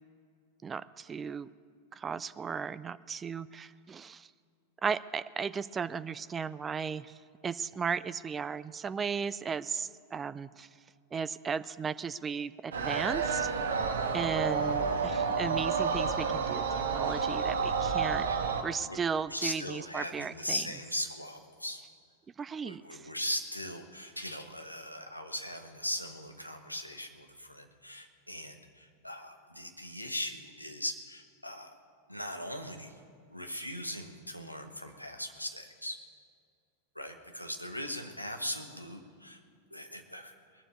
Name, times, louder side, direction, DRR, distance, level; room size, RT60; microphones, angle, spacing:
voice 1, 0.6-1.5 2.0-4.3 4.8-7.1 7.4-10.7 11.1-13.5 14.1-18.3 18.6-20.6 22.4-23.0, right 6 dB, 20° right, 16 dB, 0.3 m, -35 dB
sound 1, 12.7-18.6, right 5 dB, 65° right, 1.0 m, -30 dB
voice 2, 19.3-21.8 22.6-31.7 32.1-32.9 33.3-36.0 36.9-39.4 39.7-40.3, left 1 dB, 90° left, 5 dB, 1.1 m, -39 dB
19.5 x 7.2 x 8.3 m, 2.2 s
figure-of-eight pair, 90°, 0 cm